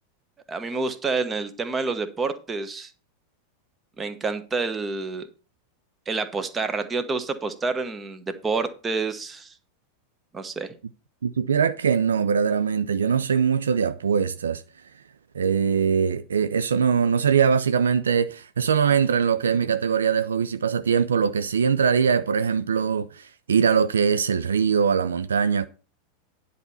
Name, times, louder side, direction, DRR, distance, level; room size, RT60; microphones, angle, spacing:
voice 1, 0.5-2.9 4.0-5.3 6.1-9.5 10.3-10.8, right 4 dB, 20° right, 1.1 m, -28 dB
voice 2, 11.2-14.6 15.3-25.7, right 6 dB, 70° right, 0.4 m, -22 dB
10.0 x 4.2 x 6.8 m
figure-of-eight pair, 90°, 0 cm